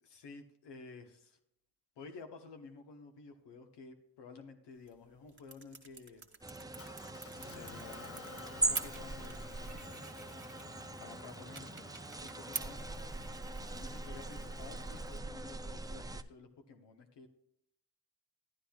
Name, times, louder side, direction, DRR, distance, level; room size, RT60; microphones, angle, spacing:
voice 1, 0.0-1.4 2.0-6.2 7.4-9.7 11.0-12.8 13.7-17.3, left 4 dB, 90° left, 5 dB, 1.1 m, -52 dB
sound 1, 4.7-16.2, right 4 dB, 30° right, 1.4 m, -49 dB
sound 2, 6.4-16.2, right 2 dB, 10° right, 0.4 m, -41 dB
Motor vehicle (road) / Engine, 6.8-15.2, left 6 dB, 35° left, 0.7 m, -54 dB
12.5 x 9.9 x 2.4 m, 0.77 s
cardioid pair, 65°, 40 cm